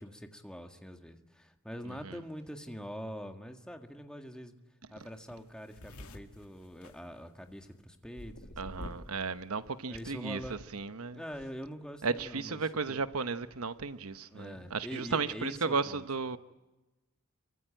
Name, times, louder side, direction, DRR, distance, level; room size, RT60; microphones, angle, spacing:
voice 1, 0.0-4.5 4.9-9.0 9.9-10.7 11.1-13.0 14.3-16.1, equal, 5° left, 1.8 m, -44 dB
sound 1, 5.0-5.1 5.3-7.7 8.2-9.2 9.5-10.0, left 1 dB, 80° left, 2.2 m, -47 dB
voice 2, 8.6-11.2 12.0-16.4, right 4 dB, 80° right, 1.0 m, -34 dB
27.5 x 24.0 x 9.0 m
head